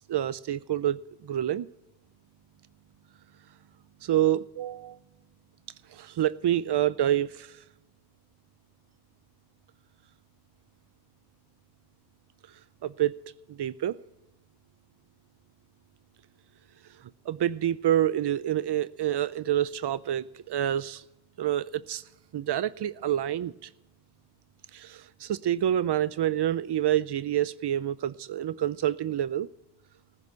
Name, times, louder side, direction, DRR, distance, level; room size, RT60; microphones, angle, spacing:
voice 1, 0.1-1.7 4.0-5.0 5.9-7.6 12.8-13.1 13.5-14.0 17.3-21.0 21.4-22.0 22.3-23.7 24.7-29.5, right 11 dB, 90° right, 0.5 m, -27 dB
14.5 x 7.0 x 9.6 m
wide cardioid pair, 90°, 40 cm